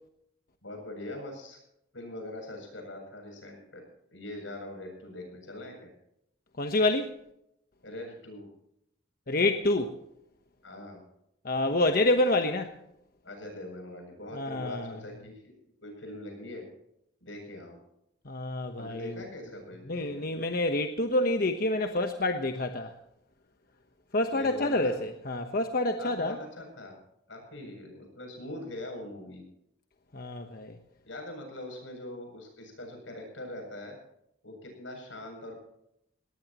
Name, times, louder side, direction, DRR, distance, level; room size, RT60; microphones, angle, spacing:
voice 1, 0.6-1.6 1.9-3.8 4.1-5.9 7.8-8.5 10.6-11.0 13.2-15.5 15.8-16.6 17.2-17.8 18.8-20.3 24.3-25.0 26.0-26.9 27.3-29.4 31.0-34.0 34.4-35.6, left 1 dB, 85° left, 7.7 m, -42 dB
voice 2, 6.6-7.1 9.3-10.0 11.4-12.8 14.3-14.9 18.3-19.2 19.9-22.9 24.1-26.4 30.1-30.8, left 2 dB, 50° left, 1.1 m, -28 dB
19.5 x 19.0 x 3.0 m
head